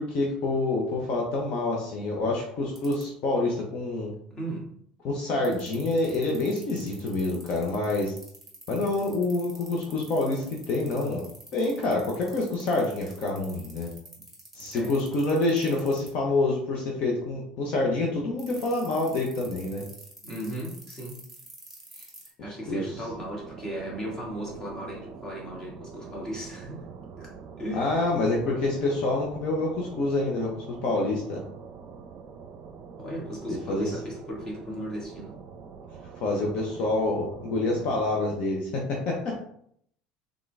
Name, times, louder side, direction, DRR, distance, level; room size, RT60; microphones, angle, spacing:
voice 1, 0.0-4.1 5.0-8.1 8.7-11.2 11.5-13.9 14.5-19.8 22.7-22.8 27.7-30.5 30.8-31.4 33.7-33.9 36.2-39.3, left 2 dB, 55° left, -1 dB, 0.9 m, -27 dB
sound 1, 2.8-3.0 5.4-16.1 18.4-22.3, right 3 dB, ahead, 1.7 m, -47 dB
voice 2, 4.3-4.7 14.7-15.0 20.2-21.2 21.9-22.1 22.4-26.8 27.2-28.1 33.0-35.4, right 1 dB, 25° left, -3 dB, 1.6 m, -36 dB
sound 2, 22.9-38.4, right 5 dB, 50° right, 0.6 m, -44 dB
3.8 x 3.7 x 3.3 m, 0.66 s
cardioid pair, 135°, 3 cm